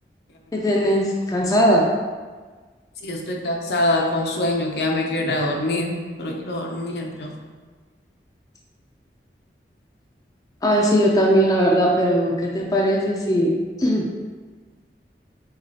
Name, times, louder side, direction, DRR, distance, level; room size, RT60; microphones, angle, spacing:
voice 1, 0.5-1.9 10.6-13.5 13.8-14.1, equal, 20° left, -2 dB, 0.4 m, -19 dB
voice 2, 3.0-7.3, left 1 dB, 70° left, 1 dB, 0.5 m, -24 dB
6.0 x 2.3 x 2.7 m, 1.4 s
head